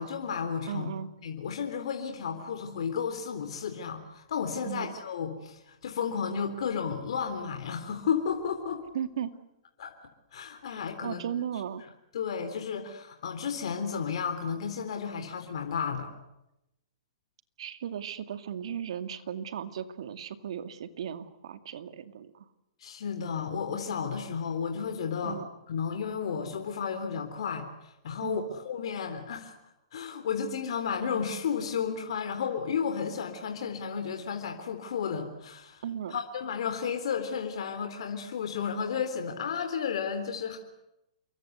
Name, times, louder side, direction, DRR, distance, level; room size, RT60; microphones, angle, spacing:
voice 1, 0.0-0.9 1.2-8.8 9.8-9.9 10.3-11.2 12.1-16.1 22.8-25.4 25.7-27.7 28.0-29.5 29.9-35.8 36.1-40.6, left 6 dB, 65° left, 5 dB, 3.7 m, -33 dB
voice 2, 0.7-1.1 4.6-4.9 8.9-9.3 10.7-11.8 17.6-22.5 25.2-25.5 28.2-28.5 35.8-36.2, right 9 dB, 65° right, 10 dB, 2.3 m, -36 dB
28.5 x 23.5 x 8.2 m, 0.88 s
hypercardioid pair, 125°, 3 cm